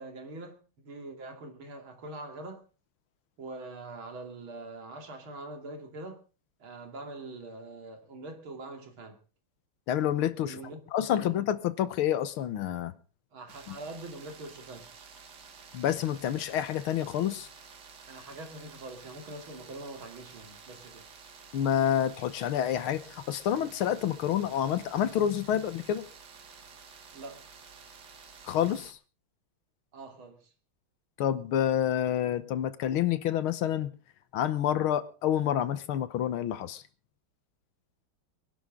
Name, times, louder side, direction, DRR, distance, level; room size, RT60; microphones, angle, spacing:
voice 1, 0.0-2.6 3.4-6.2 6.6-9.2 10.4-10.8 11.1-11.4 13.3-15.0 18.1-21.1 27.1-27.5 29.9-30.5, right 2 dB, 75° right, 3.2 m, -43 dB
voice 2, 9.9-10.6 10.9-12.9 13.7-13.8 15.7-17.5 21.5-26.0 28.4-29.0 31.2-33.9 34.3-36.8, left 10 dB, 85° left, 1.8 m, -28 dB
sound 1, 13.5-28.9, right 5 dB, 55° right, 2.0 m, -51 dB
24.5 x 11.5 x 3.7 m
omnidirectional pair, 2.3 m